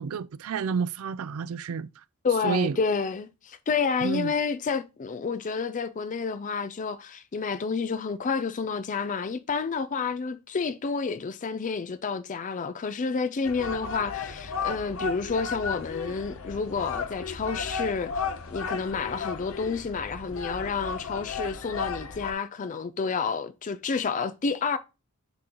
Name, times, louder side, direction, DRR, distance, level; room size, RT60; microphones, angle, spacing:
voice 1, 0.0-1.9 2.4-2.8 4.0-4.3, right 6 dB, 70° right, 0.4 m, -30 dB
voice 2, 2.2-24.8, left 5 dB, 35° left, 0.4 m, -30 dB
sound 1, 13.4-22.3, left 5 dB, 65° left, 0.7 m, -34 dB
9.6 x 3.9 x 2.9 m
head